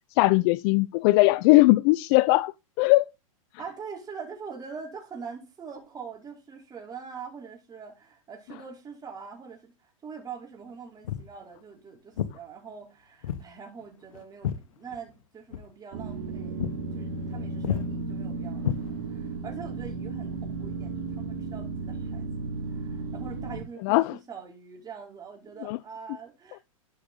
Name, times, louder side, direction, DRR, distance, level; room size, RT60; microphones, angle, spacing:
voice 1, 0.2-3.1 17.7-17.8 23.8-24.1 25.6-25.8, left 21 dB, 45° left, 0.6 m, -20 dB
voice 2, 3.6-16.6 16.9-22.3 22.7-26.6, right 6 dB, 20° right, 5.4 m, -43 dB
Walk footsteps, 11.0-11.3 12.2-12.4 13.2-13.5 13.8-15.2 15.5-15.7 16.1-16.3 16.6-16.8 17.1-17.4 17.6-17.9 18.6-19.3, left 10 dB, 70° left, 1.2 m, -32 dB
sound 1, 15.9-23.6, right 3 dB, 55° right, 3.4 m, -34 dB
11.5 x 8.0 x 3.9 m
hypercardioid pair, 110°, 18 cm